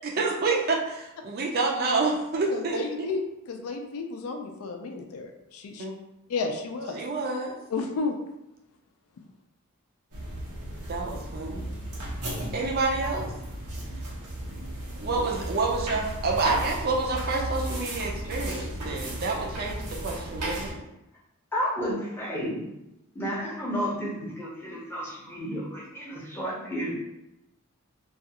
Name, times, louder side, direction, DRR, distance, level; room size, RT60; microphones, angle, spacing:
voice 1, 0.2-2.8 5.8-5.9 6.9-7.6 10.9-11.8 12.5-13.3 15.0-20.8, right 3 dB, 45° right, 0 dB, 0.4 m, -28 dB
voice 2, 2.5-3.2 3.5-5.8 6.3-7.0 7.7-8.2, left 4 dB, 70° left, 3 dB, 0.4 m, -32 dB
sound 1, 10.1-20.7, right 1 dB, 85° right, 0.8 m, -35 dB
voice 3, 21.5-22.8 23.1-26.9, equal, 10° left, -5 dB, 0.6 m, -32 dB
2.3 x 2.3 x 2.8 m, 0.89 s
head